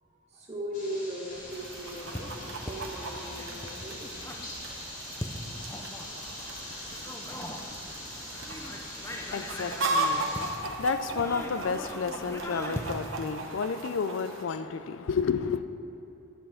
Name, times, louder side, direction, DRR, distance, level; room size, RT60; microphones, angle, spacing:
voice 1, 0.0-4.6, equal, 30° right, -6 dB, 1.7 m, -39 dB
sound 1, 0.7-10.5, left 1 dB, 40° left, 2.1 m, -43 dB
sound 2, 1.3-13.2, left 1 dB, 15° left, 0.5 m, -41 dB
Chicken rooster, 1.5-14.4, right 2 dB, 70° right, 0.9 m, -37 dB
voice 2, 9.1-15.6, left 5 dB, 65° left, 11 dB, 0.4 m, -31 dB
11.0 x 5.4 x 5.7 m, 2.9 s
head